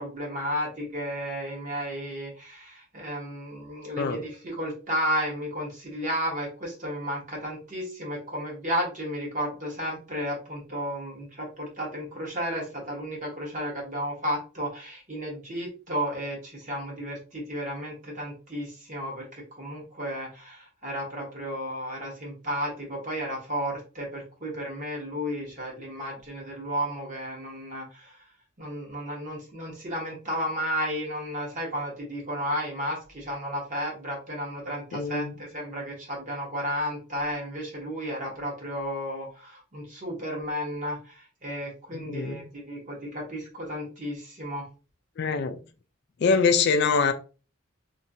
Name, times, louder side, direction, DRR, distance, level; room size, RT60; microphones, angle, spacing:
voice 1, 0.0-28.2 28.6-44.7, equal, 35° right, 1.2 m, -33 dB
voice 2, 34.9-35.3 41.9-42.5 45.2-45.6 46.2-47.1, left 5 dB, 50° left, 0.3 m, -24 dB
3.2 x 2.8 x 2.6 m
head